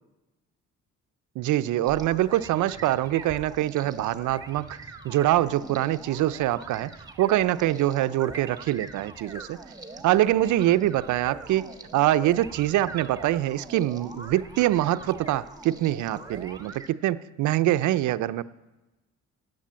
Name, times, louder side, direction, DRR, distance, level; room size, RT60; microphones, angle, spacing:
voice 1, 1.4-4.8 5.0-6.9 7.2-9.6 10.0-18.4, right 14 dB, 75° right, 15 dB, 0.5 m, -24 dB
sound 1, 1.9-16.9, right 3 dB, 15° right, 1.1 m, -43 dB
10.5 x 7.8 x 8.6 m, 1.1 s
cardioid pair, 90°, 30 cm